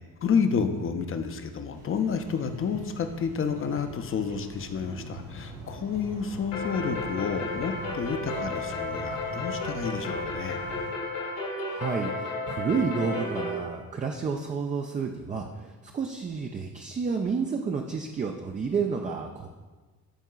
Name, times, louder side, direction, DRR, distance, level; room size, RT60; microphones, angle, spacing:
voice 1, 0.2-10.6, left 6 dB, 30° left, 8 dB, 0.6 m, -30 dB
sound 1, 1.7-10.9, right 1 dB, 80° right, 2.3 m, -43 dB
sound 2, 6.5-13.6, left 2 dB, 70° left, 1.7 m, -33 dB
voice 2, 11.6-19.5, right 5 dB, 20° right, 2 dB, 0.4 m, -30 dB
13.5 x 4.5 x 2.4 m, 1.3 s
figure-of-eight pair, 50°, 45 cm